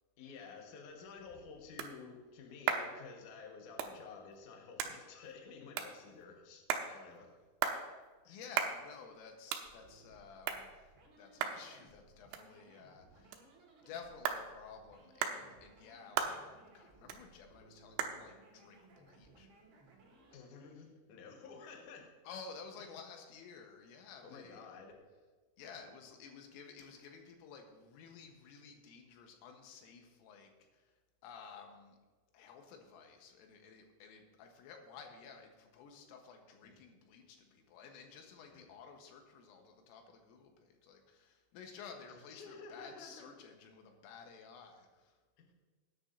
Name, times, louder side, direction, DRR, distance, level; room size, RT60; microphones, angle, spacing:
voice 1, 0.2-7.3 8.3-8.4 20.3-22.2 22.8-22.9 24.2-25.0 36.6-36.7 38.5-38.7 42.1-43.3 45.4-45.5, left 5 dB, 65° left, 1 dB, 2.1 m, -52 dB
sound 1, 0.9-20.2, right 8 dB, 80° right, 3.1 m, -42 dB
voice 2, 8.3-10.9 11.2-13.4 13.8-19.6 22.3-24.6 25.6-31.0 31.2-32.0 32.3-45.2, left 5 dB, 90° left, 3 dB, 3.8 m, -53 dB
sound 2, 9.6-20.4, right 2 dB, 55° right, 1.4 m, -63 dB
19.0 x 9.7 x 2.7 m, 1.3 s
omnidirectional pair, 5.7 m